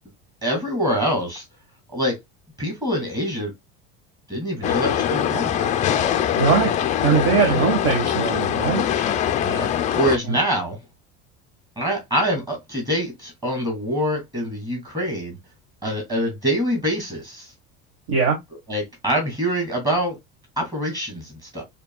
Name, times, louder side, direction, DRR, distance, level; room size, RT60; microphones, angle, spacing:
voice 1, 0.4-1.4 1.9-2.2 2.6-3.5 4.3-6.0 7.3-7.6 9.4-10.8 11.8-15.4 15.8-17.5 18.7-20.2 20.6-21.6, equal, 15° right, 2.3 m, -25 dB
sound 1, 4.6-10.2, left 10 dB, 25° left, 0.4 m, -23 dB
voice 2, 6.4-6.7 7.0-8.8 10.3-10.4 18.1-18.4, right 5 dB, 50° right, 1.4 m, -20 dB
6.7 x 2.8 x 2.2 m
cardioid pair, 165°, 30 cm